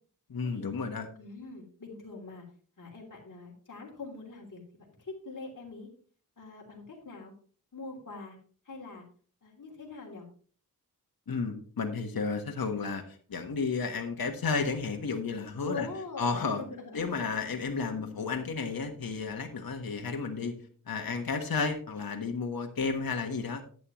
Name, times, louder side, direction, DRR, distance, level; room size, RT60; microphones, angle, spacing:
voice 1, 0.3-1.1 11.3-13.0 13.3-15.9 16.2-16.6 16.9-20.5 20.9-23.6, left 4 dB, 75° left, 5 dB, 1.4 m, -32 dB
voice 2, 1.1-2.4 2.8-4.6 5.0-5.9 6.4-7.3 7.7-8.4 8.6-9.0 9.4-10.3 15.6-17.0, left 3 dB, 60° left, -1 dB, 3.1 m, -43 dB
11.0 x 9.2 x 3.1 m, 0.43 s
wide cardioid pair, 90°, 36 cm